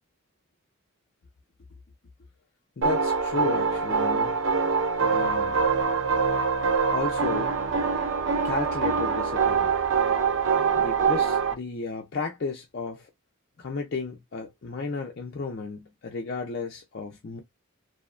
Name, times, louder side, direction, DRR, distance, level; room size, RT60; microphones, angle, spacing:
voice 1, 2.8-4.4 5.1-5.6 6.9-7.6 8.4-9.7 10.8-13.1 13.6-17.4, left 4 dB, 50° left, 0.5 m, -33 dB
sound 1, 2.8-11.5, right 5 dB, 65° right, 0.5 m, -24 dB
2.7 x 2.1 x 2.4 m
head